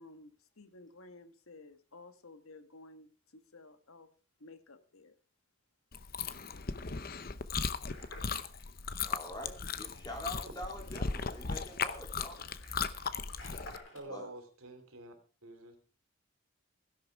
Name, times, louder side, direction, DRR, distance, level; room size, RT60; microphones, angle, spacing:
voice 1, 0.0-4.1 4.4-5.2, left 2 dB, 80° left, 10 dB, 1.6 m, -54 dB
Chewing mastication, 5.9-13.8, left 5 dB, 45° left, 0.8 m, -37 dB
sound 1, 7.9-14.0, left 2 dB, 60° left, 4.7 m, -54 dB
voice 2, 9.0-12.4 14.1-14.3, left 1 dB, 20° left, 3 dB, 3.1 m, -44 dB
voice 3, 13.9-15.1 15.4-15.8, right 2 dB, 80° right, 7 dB, 3.3 m, -47 dB
16.0 x 11.0 x 4.7 m, 0.37 s
head